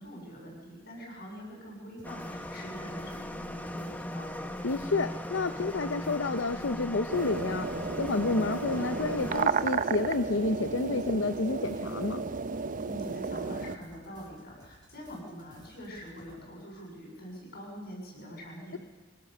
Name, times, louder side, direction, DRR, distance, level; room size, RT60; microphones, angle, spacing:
voice 1, 0.0-4.5 12.8-18.8, equal, 60° left, -1 dB, 7.6 m, -44 dB
sound 1, 2.0-9.5, left 1 dB, 10° left, 1.3 m, -38 dB
sound 2, 2.0-16.4, right 1 dB, 25° right, 4.0 m, -58 dB
voice 2, 4.6-12.2, left 3 dB, 80° left, 10 dB, 0.8 m, -30 dB
sound 3, 7.1-13.8, right 5 dB, 45° right, 0.7 m, -33 dB
23.5 x 18.5 x 6.7 m, 1.3 s
head